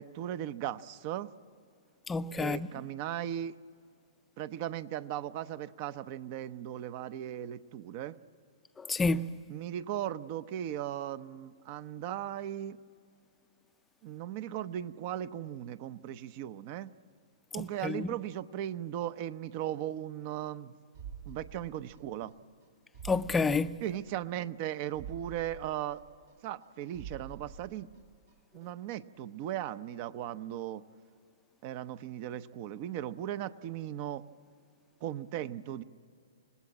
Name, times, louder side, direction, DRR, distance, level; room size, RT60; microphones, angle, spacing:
voice 1, 0.0-1.3 2.4-3.6 4.4-8.2 9.5-12.8 14.0-16.9 17.5-20.7 21.3-22.3 23.8-26.0 26.4-27.9 28.5-30.8 31.6-34.2 35.0-35.8, right 11 dB, 45° right, 0.7 m, -37 dB
voice 2, 2.1-2.7 8.8-9.4 17.6-18.1 23.0-23.8, left 4 dB, 10° left, 0.5 m, -29 dB
sound 1, 20.9-22.3 22.6-22.7 22.9-24.3 24.6-24.7 24.9-26.7 26.9-28.3 28.6-28.7, right 7 dB, 65° right, 2.2 m, -47 dB
26.5 x 19.5 x 8.6 m
hypercardioid pair, 135°, 0 cm